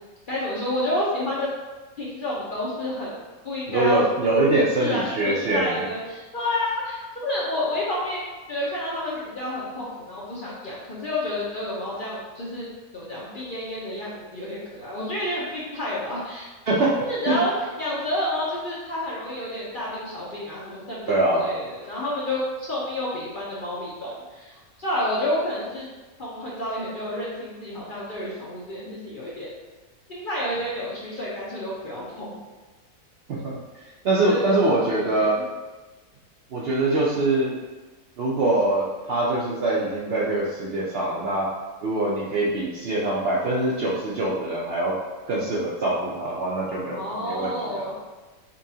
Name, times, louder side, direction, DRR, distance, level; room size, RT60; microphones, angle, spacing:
voice 1, 0.3-1.5 2.0-3.1 3.4-4.0 4.8-8.2 8.5-12.7 12.9-16.5 17.1-17.5 17.8-25.9 26.2-29.5 30.1-32.4 34.2-35.3 46.9-48.0, left 1 dB, 60° left, -6 dB, 0.5 m, -29 dB
voice 2, 3.7-5.9 16.7-17.0 17.3-17.4 21.1-21.4 33.4-33.6 34.0-35.4 36.5-37.6 38.2-41.5 41.8-44.9 45.3-47.9, right 2 dB, 75° right, -6 dB, 0.5 m, -23 dB
5.3 x 2.3 x 2.7 m, 1.2 s
omnidirectional pair, 1.7 m